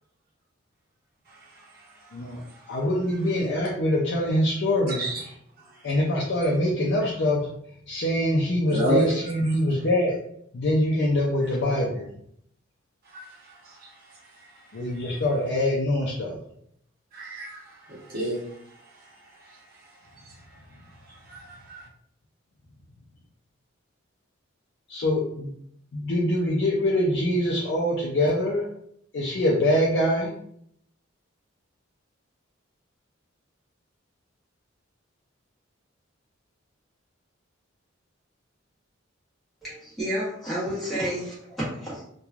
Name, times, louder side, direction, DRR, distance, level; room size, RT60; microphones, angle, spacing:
voice 1, 1.3-2.7 4.9-5.2 8.7-9.4 13.1-13.9 14.8-14.9 17.1-18.6 19.4-19.6 21.1-21.8, right 1 dB, 45° right, -4 dB, 0.8 m, -32 dB
voice 2, 2.7-5.0 5.8-7.5 7.9-10.2 10.5-12.1 14.7-16.4 24.9-25.5 25.9-28.7 29.1-30.3, left 1 dB, 60° left, -3 dB, 0.4 m, -24 dB
voice 3, 39.6-42.0, equal, ahead, -11 dB, 1.0 m, -30 dB
3.0 x 2.2 x 2.3 m, 0.70 s
head